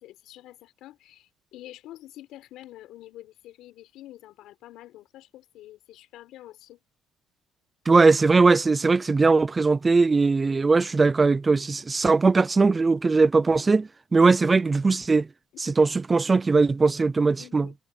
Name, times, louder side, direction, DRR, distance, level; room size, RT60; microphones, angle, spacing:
voice 1, 0.0-6.8 17.4-17.8, left 14 dB, 70° left, 5.3 m, -47 dB
voice 2, 7.9-15.3 15.6-17.7, right 4 dB, 20° right, 0.5 m, -20 dB
cardioid pair, 145°, 0 cm